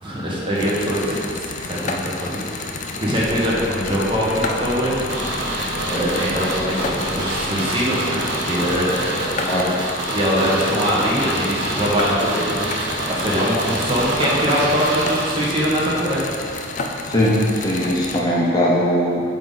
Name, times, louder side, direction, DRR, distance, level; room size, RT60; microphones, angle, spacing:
voice 1, 0.0-2.6 3.0-5.1 5.9-9.2 10.1-16.7, equal, 30° right, -6 dB, 1.3 m, -22 dB
sound 1, 0.6-18.2, left 3 dB, 40° left, 0.5 m, -31 dB
sound 2, 3.2-7.6, left 1 dB, 75° left, 1.2 m, -32 dB
sound 3, 5.1-16.0 16.3-16.4, right 2 dB, 70° right, 1.0 m, -27 dB
voice 2, 17.1-19.3, equal, 20° left, -6 dB, 0.8 m, -19 dB
9.0 x 3.7 x 4.0 m, 2.6 s
head